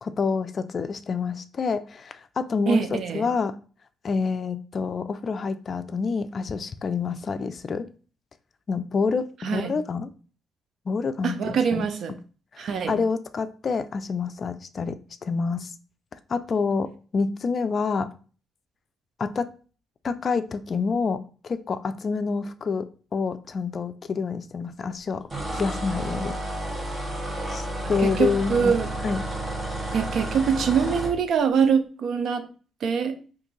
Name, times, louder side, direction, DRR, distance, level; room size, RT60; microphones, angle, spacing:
voice 1, 0.0-3.5 4.0-7.9 8.7-9.3 9.5-10.1 10.9-11.9 12.5-15.7 16.3-18.1 19.2-19.5 20.0-22.9 23.1-25.2 25.5-26.3 27.5-28.7 29.0-29.2, left 5 dB, 45° left, 0.3 m, -27 dB
voice 2, 2.7-3.3 9.4-9.8 11.2-12.2 12.6-13.0 28.0-28.9 29.9-32.5 32.8-33.2, right 6 dB, 65° right, 0.5 m, -24 dB
sound 1, 25.3-31.1, right 1 dB, 25° right, 1.0 m, -31 dB
2.7 x 2.6 x 3.9 m
cardioid pair, 90°, 0 cm